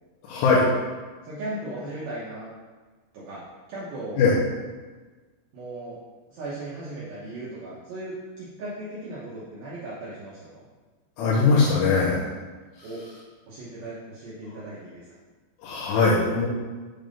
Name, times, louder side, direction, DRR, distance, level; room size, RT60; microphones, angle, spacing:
voice 1, 0.2-0.6 4.2-4.4 11.2-12.3 15.6-16.5, left 4 dB, 75° left, -8 dB, 2.9 m, -20 dB
voice 2, 1.2-2.5 3.1-4.2 5.5-6.0 6.3-10.7 12.8-13.0 13.5-15.1, right 1 dB, 75° right, -8 dB, 2.2 m, -37 dB
7.6 x 2.6 x 5.1 m, 1.3 s
omnidirectional pair, 5.5 m